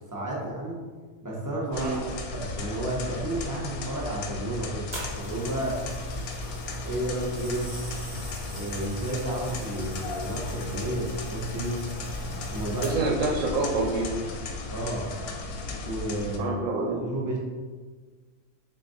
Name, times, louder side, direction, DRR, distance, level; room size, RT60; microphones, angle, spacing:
voice 1, 0.1-0.8 1.2-5.9 6.4-6.5 6.8-7.8 8.5-12.0 12.5-13.0 14.7-15.1 15.8-17.4, right 1 dB, 30° right, -5 dB, 0.3 m, -32 dB
sound 1, 1.7-16.4, left 3 dB, 90° left, 1.1 m, -35 dB
sound 2, 4.9-13.2 14.0-14.2, right 1 dB, 10° right, 0.7 m, -41 dB
voice 2, 12.8-14.1 16.4-17.1, right 3 dB, 70° right, -1 dB, 0.9 m, -27 dB
3.9 x 3.8 x 2.6 m, 1.4 s
omnidirectional pair, 1.5 m